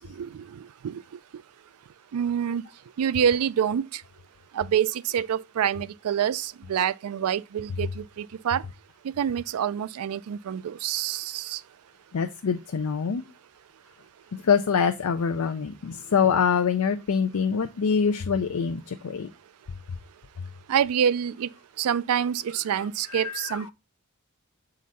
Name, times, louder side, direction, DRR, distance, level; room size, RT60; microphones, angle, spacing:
voice 1, 0.1-1.0 2.1-2.6 3.0-4.0 4.5-8.6 9.2-11.6 20.7-21.5 21.8-23.7, right 8 dB, 80° right, 0.3 m, -27 dB
voice 2, 12.1-13.2 14.4-19.3 23.1-23.6, left 6 dB, 80° left, 0.5 m, -25 dB
7.4 x 3.8 x 4.0 m
head